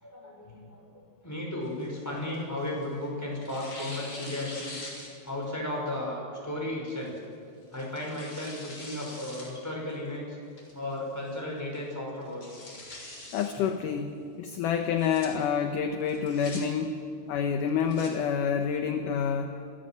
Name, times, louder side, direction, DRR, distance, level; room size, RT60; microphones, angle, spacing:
voice 1, 0.0-0.8 1.2-4.8 5.2-7.1 7.7-10.4 10.7-12.5, left 1 dB, 5° left, -2 dB, 5.5 m, -34 dB
Tearing, 1.6-2.9 3.4-5.5 5.9-6.0 6.9-7.2 7.7-9.5 9.9-10.0 10.6-11.0 11.3-11.4 11.7-11.8 12.2-13.5 14.8-15.3 16.1-16.6 17.6-18.1, left 2 dB, 30° left, 4.6 m, -44 dB
voice 2, 13.3-14.1 14.4-17.0 17.3-19.6, left 7 dB, 70° left, 6 dB, 2.2 m, -28 dB
26.5 x 16.5 x 7.8 m, 2.4 s
omnidirectional pair, 4.5 m